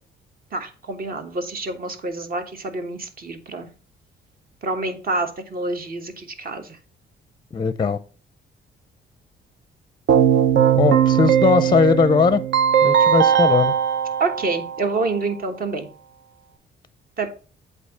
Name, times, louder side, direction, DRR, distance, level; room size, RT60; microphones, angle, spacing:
voice 1, 0.5-3.7 4.6-6.8 14.2-15.9 17.2-17.3, right 3 dB, 45° right, 1.3 m, -27 dB
voice 2, 7.5-8.0 10.7-12.4 12.8-13.7, left 5 dB, 25° left, 0.5 m, -19 dB
Keyboard (musical), 10.1-15.1, right 9 dB, 70° right, 0.7 m, -19 dB
8.1 x 2.7 x 5.8 m
cardioid pair, 90°, 20 cm